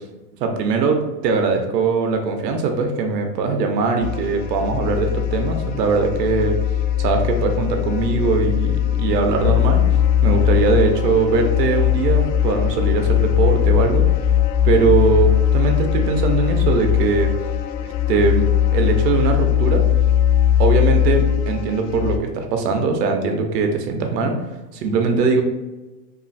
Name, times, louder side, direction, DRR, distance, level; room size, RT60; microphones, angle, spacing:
voice 1, 0.4-6.6 7.0-9.8 10.2-14.3 14.6-15.3 15.5-17.3 17.8-18.5 18.7-19.8 20.6-24.3 24.7-25.4, right 4 dB, 80° right, 4 dB, 0.7 m, -20 dB
sound 1, 4.0-22.2, left 10 dB, 85° left, 0.6 m, -19 dB
3.0 x 2.4 x 2.5 m, 1.1 s
supercardioid pair, 160°, 49 cm